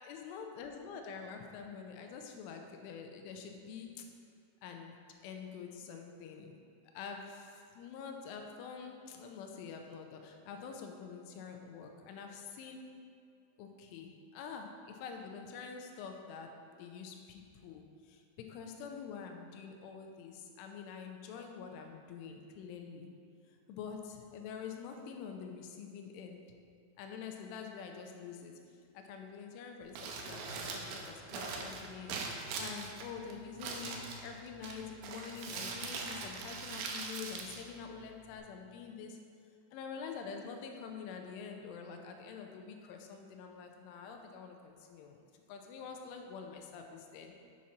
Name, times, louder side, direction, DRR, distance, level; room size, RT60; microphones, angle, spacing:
voice 1, 0.0-4.1 4.6-6.6 6.9-12.9 13.6-23.1 23.5-26.4 27.0-39.2 39.7-47.3, left 6 dB, 85° left, 4 dB, 3.0 m, -46 dB
Crumpling crinkling, 29.8-38.4, right 4 dB, 80° right, 2.4 m, -42 dB
7.5 x 7.2 x 4.1 m, 2.3 s
omnidirectional pair, 5.7 m